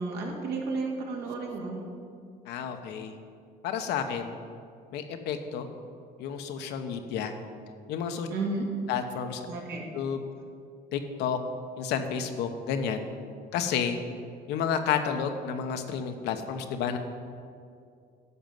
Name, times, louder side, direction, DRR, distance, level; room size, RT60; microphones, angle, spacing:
voice 1, 0.0-1.8 8.3-8.7 9.5-9.9, right 3 dB, 80° right, -1 dB, 2.4 m, -32 dB
voice 2, 2.5-3.1 3.6-4.3 4.9-5.7 6.2-7.3 7.9-8.3 8.9-9.5 9.9-10.2 10.9-11.4 11.8-13.1 13.5-14.0 14.5-17.0, left 7 dB, 85° left, 6 dB, 1.0 m, -30 dB
12.5 x 5.3 x 7.7 m, 2.3 s
cardioid pair, 110°, 17 cm